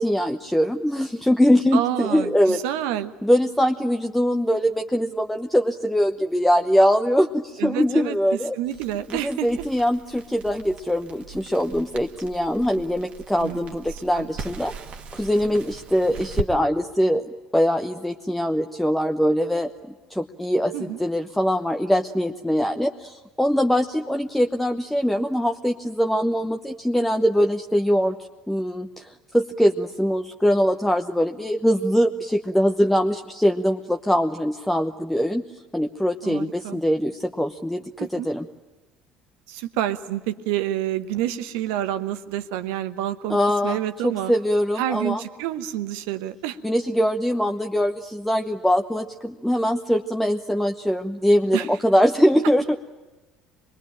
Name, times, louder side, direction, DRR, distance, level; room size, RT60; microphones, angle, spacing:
voice 1, 0.0-2.6 3.2-8.6 9.1-14.7 15.1-19.7 20.1-28.2 28.5-35.4 35.7-38.4 43.3-45.2 46.6-52.8, equal, 5° left, 4 dB, 1.0 m, -22 dB
voice 2, 1.7-3.1 7.6-8.1 8.5-9.6 13.4-14.3 20.7-21.0 36.2-36.8 38.0-38.3 39.5-43.4 43.6-44.3 44.8-46.6 51.5-51.7, right 12 dB, 65° right, 11 dB, 1.1 m, -28 dB
Crackle, 8.6-16.5, right 4 dB, 45° right, 1.7 m, -38 dB
26.0 x 21.5 x 9.0 m, 1.1 s
figure-of-eight pair, 60°, 3 cm